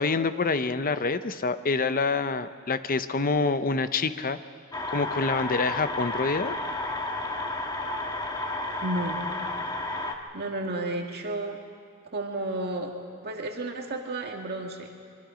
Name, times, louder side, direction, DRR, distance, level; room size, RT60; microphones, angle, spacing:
voice 1, 0.0-4.4 4.9-6.6, left 4 dB, 40° left, 11 dB, 0.7 m, -26 dB
sound 1, 4.7-10.2, left 2 dB, 20° left, 1.5 m, -32 dB
voice 2, 8.8-9.2 10.3-11.6 12.1-12.9 13.2-14.9, right 2 dB, 50° right, 1 dB, 2.1 m, -32 dB
24.5 x 24.0 x 5.1 m, 2.1 s
head